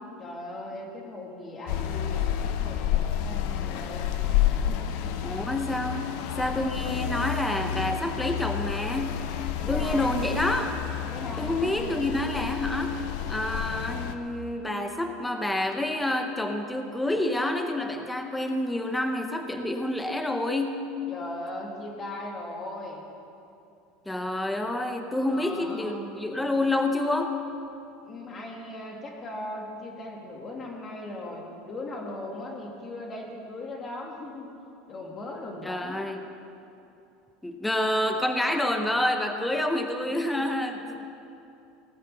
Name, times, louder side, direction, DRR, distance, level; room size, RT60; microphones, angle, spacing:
voice 1, 0.2-4.1 4.4-5.0 9.6-10.3 11.1-12.0 21.1-23.0 25.3-26.1 28.0-34.6 34.9-36.0 40.1-40.5, left 1 dB, 25° left, 1 dB, 2.2 m, -39 dB
sound 1, 1.7-14.2, left 10 dB, 60° left, 0.8 m, -30 dB
voice 2, 5.2-9.3 9.7-10.7 11.4-21.0 24.1-27.4 35.6-36.2 37.4-41.1, left 1 dB, 5° left, 5 dB, 0.8 m, -28 dB
17.5 x 9.8 x 6.8 m, 2.7 s
supercardioid pair, 160°, 0 cm